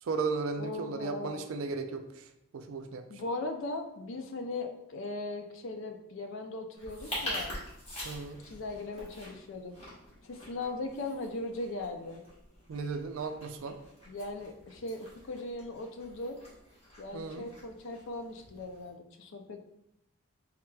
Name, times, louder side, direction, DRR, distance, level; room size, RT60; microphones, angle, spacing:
voice 1, 0.0-3.2 8.0-8.4 12.7-13.8 17.1-17.5, right 4 dB, 70° right, 8 dB, 0.4 m, -36 dB
voice 2, 0.6-1.5 3.1-7.6 8.4-9.7 10.2-12.2 14.1-16.4 17.0-19.6, left 2 dB, 60° left, 6 dB, 0.4 m, -39 dB
sound 1, 6.8-18.9, left 1 dB, 25° left, 1.2 m, -45 dB
4.5 x 3.5 x 2.3 m, 0.83 s
head